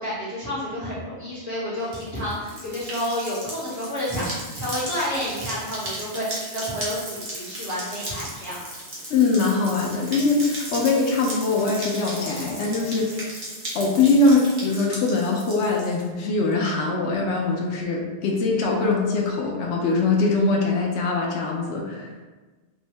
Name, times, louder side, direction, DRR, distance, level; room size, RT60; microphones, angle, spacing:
voice 1, 0.0-8.6, equal, 15° right, -12 dB, 1.4 m, -30 dB
sound 1, 1.8-16.0, right 1 dB, 50° right, 1.0 m, -36 dB
voice 2, 9.1-13.3 13.7-22.1, left 3 dB, 80° left, -1 dB, 0.9 m, -22 dB
3.6 x 2.6 x 3.2 m, 1.3 s
omnidirectional pair, 1.2 m